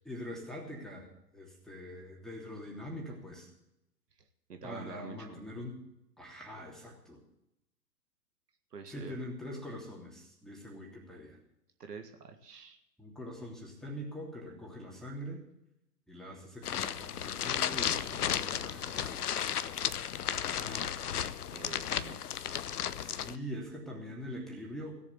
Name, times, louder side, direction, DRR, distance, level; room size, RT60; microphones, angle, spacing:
voice 1, 0.1-3.5 4.6-5.8 6.2-7.2 8.9-11.4 13.0-15.5 16.1-19.4 20.3-20.9 23.0-24.9, equal, ahead, -1 dB, 3.0 m, -43 dB
voice 2, 4.2-5.5 8.7-9.2 11.8-12.8 21.5-22.3, right 5 dB, 70° right, 5 dB, 1.9 m, -47 dB
sound 1, 16.6-23.4, left 9 dB, 65° left, 0.8 m, -34 dB
16.5 x 7.4 x 8.1 m, 0.82 s
figure-of-eight pair, 115°, 50 cm